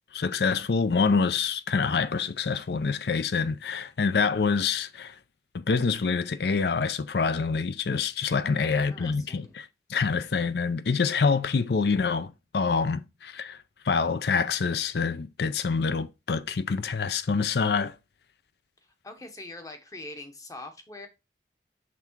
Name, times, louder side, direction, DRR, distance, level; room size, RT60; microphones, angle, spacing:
voice 1, 0.1-5.1 5.5-13.6 13.9-17.9, left 5 dB, 65° left, 0.5 m, -26 dB
voice 2, 8.6-9.5 19.0-21.1, left 2 dB, 20° left, 0.9 m, -43 dB
6.0 x 3.5 x 4.5 m
head